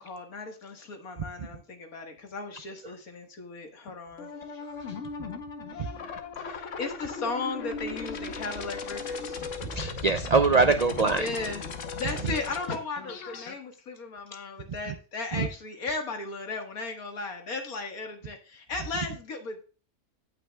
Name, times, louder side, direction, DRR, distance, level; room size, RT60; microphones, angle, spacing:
voice 1, 0.0-4.3 6.4-9.4 11.2-11.6 11.9-19.6, left 3 dB, 80° left, 4 dB, 2.1 m, -36 dB
sound 1, 4.2-13.5, left 4 dB, 60° left, 1.3 m, -37 dB
voice 2, 9.7-11.3 14.9-15.0 15.3-15.5 15.9-16.0, right 4 dB, 75° right, 8 dB, 0.3 m, -23 dB
16.5 x 6.0 x 2.3 m, 0.35 s
omnidirectional pair, 1.5 m